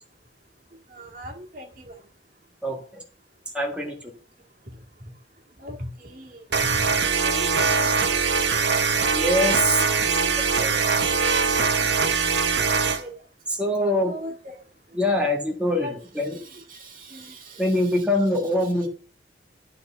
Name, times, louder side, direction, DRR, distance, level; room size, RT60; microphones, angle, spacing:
voice 1, 0.9-1.9 4.7-4.8 5.6-7.0 7.2-8.0 12.6-13.1 14.0-14.6 15.8-18.9, equal, 45° right, 1 dB, 1.9 m, -40 dB
voice 2, 2.6-3.0 3.5-4.1 9.1-9.8 10.6-11.1 13.5-14.1 15.0-15.9 16.1-16.4 17.6-18.9, left 1 dB, 5° right, 0 dB, 1.4 m, -24 dB
sound 1, 6.5-13.0, right 5 dB, 65° right, 1.0 m, -22 dB
11.5 x 4.2 x 6.7 m, 0.41 s
head